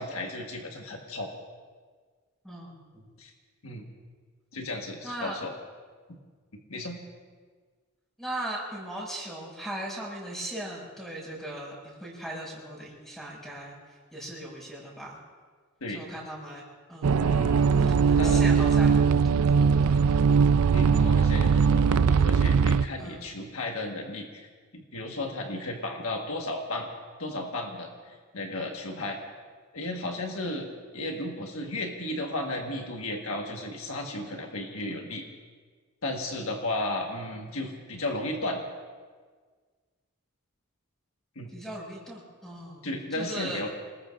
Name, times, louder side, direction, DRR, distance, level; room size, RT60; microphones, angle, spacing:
voice 1, 0.0-1.3 3.2-3.3 3.6-3.8 4.5-5.5 6.7-7.0 15.8-16.0 17.2-17.9 18.2-18.4 20.7-24.5 24.7-26.9 27.2-29.2 29.7-35.2 36.0-38.6 41.3-41.5 42.8-43.7, left 1 dB, 70° left, 1 dB, 1.6 m, -34 dB
voice 2, 2.4-3.0 5.0-5.4 8.2-13.8 14.1-15.2 15.9-16.6 16.9-17.2 17.8-20.3 23.0-23.2 41.5-43.6, right 1 dB, ahead, -3 dB, 6.2 m, -38 dB
sound 1, 17.0-22.9, right 6 dB, 85° right, 0.4 m, -21 dB
27.5 x 20.0 x 2.6 m, 1.5 s
head